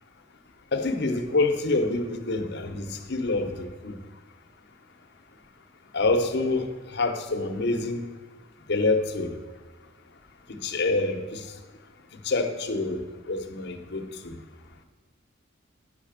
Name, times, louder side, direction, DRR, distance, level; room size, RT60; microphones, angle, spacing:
voice 1, 0.7-3.9 5.9-6.7 6.9-8.1 8.7-9.3 10.6-11.4 12.2-13.0 13.3-14.4, left 3 dB, 55° left, 5 dB, 0.9 m, -26 dB
9.6 x 5.7 x 6.6 m, 1.4 s
head